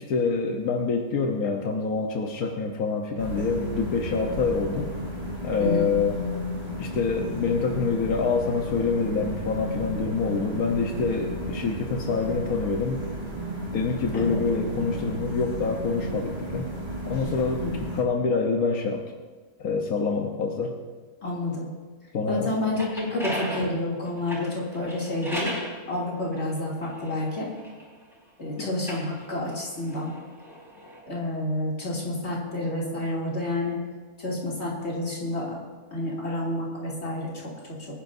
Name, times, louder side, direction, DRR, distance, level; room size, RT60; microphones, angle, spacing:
voice 1, 0.0-4.9 5.4-6.2 6.8-13.0 13.7-16.7 17.1-17.7 17.9-19.0 19.6-20.7 22.1-22.5 28.6-28.7, left 4 dB, 90° left, 2 dB, 1.5 m, -26 dB
sound 1, 3.2-18.0, equal, 25° right, 3.4 m, -33 dB
voice 2, 21.2-21.7 22.3-25.5 25.9-27.5 28.4-30.1 31.1-33.8 34.2-35.6 35.9-37.5, left 1 dB, 50° left, -5 dB, 3.1 m, -29 dB
sound 2, 22.8-25.7 26.5-28.2 28.7-31.0, equal, ahead, 4.4 m, -37 dB
24.0 x 10.5 x 2.7 m, 1.4 s
omnidirectional pair, 1.5 m